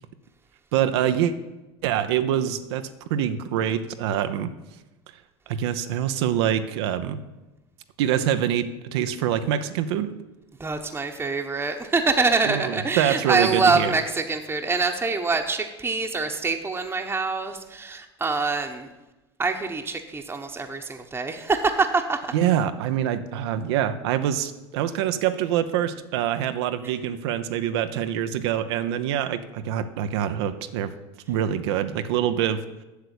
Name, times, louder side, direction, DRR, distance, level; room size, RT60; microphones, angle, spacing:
voice 1, 0.7-1.3 1.8-4.5 5.5-7.2 8.0-10.2 12.4-14.0 22.3-30.9 31.3-32.6, right 10 dB, 75° right, 9 dB, 0.7 m, -25 dB
voice 2, 10.6-18.9 19.4-22.2, right 4 dB, 15° right, 3 dB, 1.0 m, -25 dB
8.1 x 6.8 x 8.2 m, 1.1 s
hypercardioid pair, 85°, 14 cm